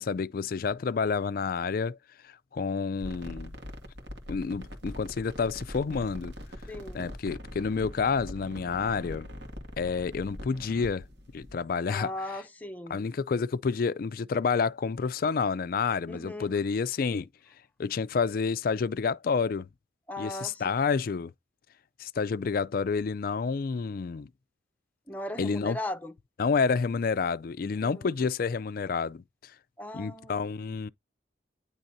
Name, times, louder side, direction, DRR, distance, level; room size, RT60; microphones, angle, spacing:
voice 1, 0.0-2.0 2.2-3.5 4.3-6.3 6.9-9.3 9.8-11.1 11.3-12.1 12.9-17.3 17.8-19.7 20.2-21.3 22.0-24.3 25.4-25.8 26.4-29.2 29.9-30.9, left 5 dB, 50° left, 0.4 m, -29 dB
sound 1, 2.9-11.5, equal, 70° right, 2.0 m, -42 dB
voice 2, 6.7-7.1 11.9-13.1 16.1-16.6 20.1-20.6 25.1-26.1 27.6-28.3 29.8-30.7, left 1 dB, 10° left, 0.7 m, -38 dB
10.0 x 3.5 x 2.7 m
head